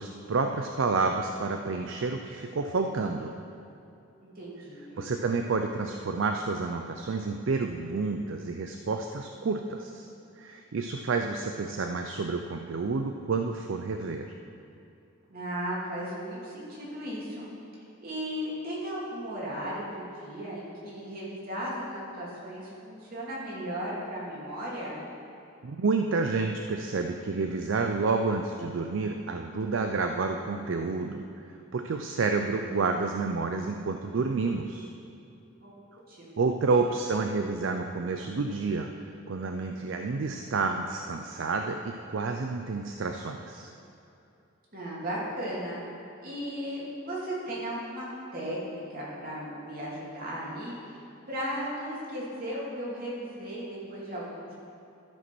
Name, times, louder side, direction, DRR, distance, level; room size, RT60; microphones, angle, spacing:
voice 1, 0.0-3.3 5.0-10.1 10.4-14.3 25.6-31.3 31.7-34.9 36.4-38.9 39.3-43.7, right 4 dB, 65° right, 5 dB, 0.5 m, -29 dB
voice 2, 4.2-5.0 15.3-17.5 18.0-25.0 35.6-35.7 36.1-36.5 44.7-45.8 46.2-48.1 48.3-50.7 51.3-54.5, equal, 45° right, -6 dB, 2.7 m, -36 dB
13.0 x 5.1 x 6.1 m, 2.8 s
head